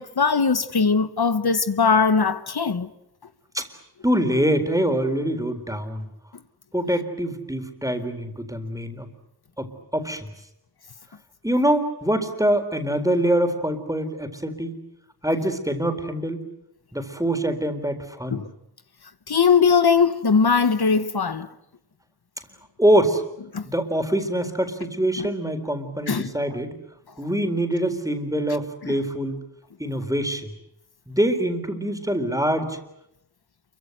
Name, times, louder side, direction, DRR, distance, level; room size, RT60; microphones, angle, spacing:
voice 1, 0.0-2.9 18.3-18.5 19.3-21.5 23.5-23.6 25.2-25.3 26.1-26.3 28.8-28.9, left 5 dB, 80° left, 1.1 m, -20 dB
voice 2, 4.0-6.1 6.7-9.1 9.6-10.3 11.4-14.8 15.2-16.4 16.9-18.4 22.8-23.2 23.6-26.7 27.2-29.4 29.8-30.5 31.1-32.8, right 1 dB, 10° right, 3.9 m, -24 dB
28.5 x 24.0 x 8.0 m
wide cardioid pair, 60°, 37 cm